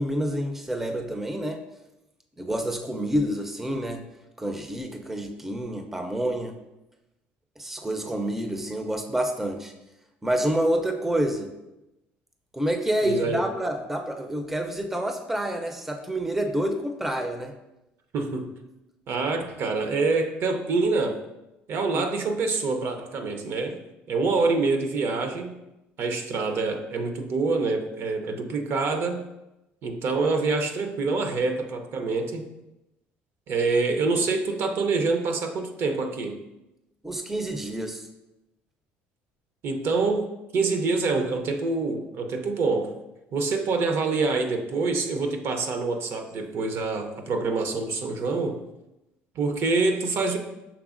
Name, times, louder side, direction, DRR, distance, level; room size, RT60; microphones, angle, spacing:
voice 1, 0.0-1.6 2.4-4.0 4.4-6.5 7.6-9.7 10.2-11.5 12.5-17.5 21.9-22.1 37.0-38.1, right 1 dB, 5° right, 5 dB, 0.4 m, -28 dB
voice 2, 13.0-13.4 18.1-18.5 19.1-21.2 21.7-23.8 24.1-25.6 26.0-29.2 29.8-32.5 33.5-36.4 39.6-42.9 43.3-48.6 49.4-50.4, right 3 dB, 60° right, 6 dB, 0.6 m, -26 dB
5.9 x 3.4 x 2.4 m, 0.94 s
supercardioid pair, 95°, 5 cm